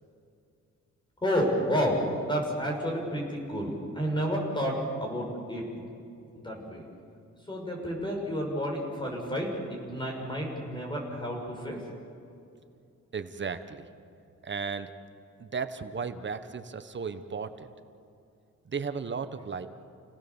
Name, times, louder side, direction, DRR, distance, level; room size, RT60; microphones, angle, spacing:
voice 1, 1.2-5.8 6.4-6.8 7.5-11.9, equal, 15° left, -1 dB, 6.7 m, -30 dB
voice 2, 13.1-13.8 14.4-14.9 15.4-17.7 18.7-19.7, right 5 dB, 40° right, 10 dB, 1.2 m, -35 dB
29.5 x 18.5 x 7.2 m, 2.6 s
cardioid pair, 120°, 29 cm